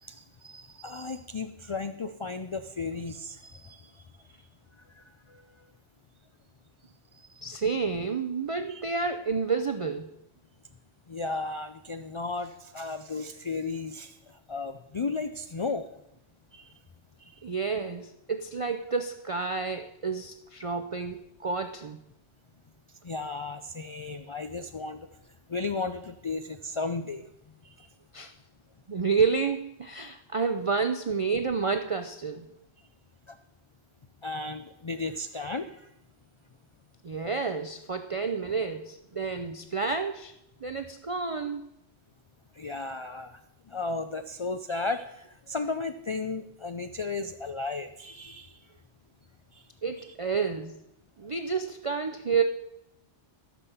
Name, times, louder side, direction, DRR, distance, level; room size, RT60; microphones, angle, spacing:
voice 1, 0.0-4.0 5.0-5.1 5.3-5.4 7.1-7.6 8.7-8.8 11.1-15.8 16.5-16.7 23.0-25.1 25.5-27.2 27.6-27.9 31.6-31.7 33.3-33.4 34.2-35.8 42.6-43.3 43.7-48.6 49.5-49.6 50.0-50.1, left 3 dB, 45° left, 9 dB, 0.3 m, -35 dB
voice 2, 7.4-10.1 17.4-22.0 28.1-28.3 28.9-32.5 37.0-40.3 40.6-41.7 49.8-50.8 51.2-52.4, right 5 dB, 40° right, 7 dB, 0.5 m, -30 dB
14.5 x 6.1 x 7.0 m, 0.81 s
omnidirectional pair, 1.2 m